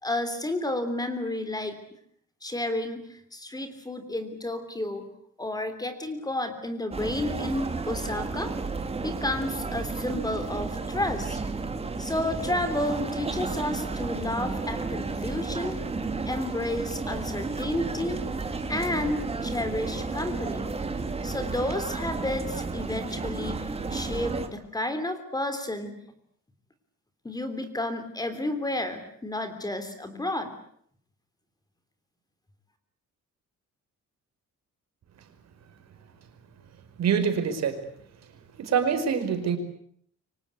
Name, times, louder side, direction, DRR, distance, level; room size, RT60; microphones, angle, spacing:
voice 1, 0.0-1.7 2.4-5.1 5.4-8.5 9.0-11.4 12.0-15.8 16.2-18.2 18.7-20.8 21.2-26.0 27.2-30.5, left 1 dB, 10° left, 9 dB, 3.4 m, -31 dB
sound 1, 6.9-24.5, right 3 dB, 20° right, 2.6 m, -32 dB
voice 2, 37.0-37.8 38.6-39.6, right 7 dB, 60° right, 8 dB, 5.1 m, -25 dB
28.5 x 25.0 x 8.4 m, 0.66 s
cardioid pair, 165°, 30 cm